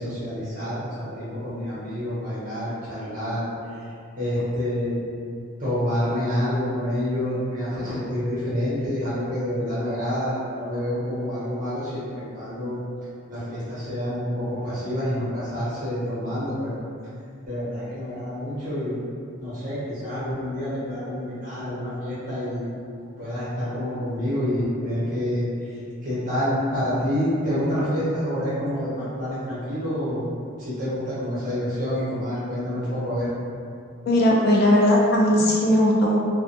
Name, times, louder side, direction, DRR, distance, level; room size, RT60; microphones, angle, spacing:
voice 1, 0.0-3.7 4.2-5.0 5.6-12.8 13.3-16.7 17.4-19.0 19.4-22.7 23.2-30.2 30.6-33.3, equal, 35° right, -12 dB, 0.9 m, -28 dB
voice 2, 34.1-36.2, left 1 dB, 45° left, -3 dB, 0.4 m, -18 dB
2.4 x 2.4 x 2.6 m, 2.4 s
head